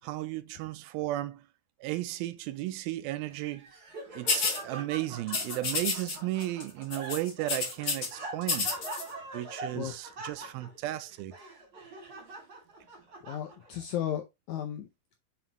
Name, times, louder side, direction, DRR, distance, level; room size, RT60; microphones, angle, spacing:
voice 1, 0.0-1.4 1.8-3.7 4.1-8.7 9.3-11.3, right 15 dB, 90° right, 2.5 m, -34 dB
Laughter, 3.3-13.8, right 2 dB, 35° right, 2.8 m, -44 dB
sound 1, 4.3-4.6 5.3-6.2 6.4-6.6 6.9-8.1 8.4-9.0, left 4 dB, 60° left, 1.0 m, -30 dB
voice 2, 13.3-14.9, left 10 dB, 80° left, 1.7 m, -34 dB
6.0 x 5.7 x 2.9 m
omnidirectional pair, 4.2 m